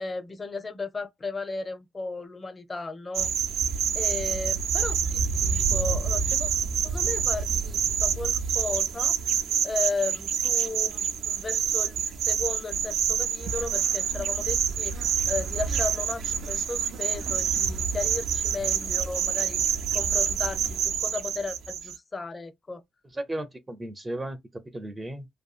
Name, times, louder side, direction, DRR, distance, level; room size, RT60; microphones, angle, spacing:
voice 1, 0.0-3.3 3.5-3.6 3.9-6.5 6.8-9.1 9.6-19.6 19.9-22.8, left 3 dB, 30° left, 0.6 m, -35 dB
sound 1, 3.1-22.0, right 7 dB, 75° right, 0.4 m, -27 dB
voice 2, 23.1-25.3, right 1 dB, 20° right, 0.5 m, -35 dB
2.6 x 2.3 x 2.4 m
cardioid pair, 90°, 0 cm